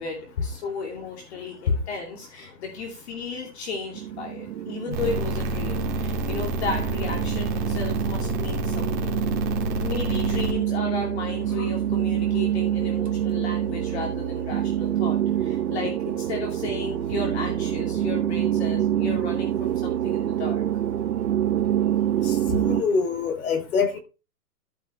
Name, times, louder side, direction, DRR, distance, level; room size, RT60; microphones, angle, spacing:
voice 1, 0.0-9.2 9.8-20.6, left 4 dB, 45° left, 0 dB, 2.7 m, -34 dB
sound 1, 4.0-22.8, right 11 dB, 75° right, 0.9 m, -26 dB
sound 2, 4.9-10.5, equal, 30° right, 2.3 m, -29 dB
voice 2, 22.2-24.0, left 5 dB, 60° left, 5 dB, 3.6 m, -25 dB
13.5 x 5.6 x 3.4 m, 0.31 s
hypercardioid pair, 165°, 47 cm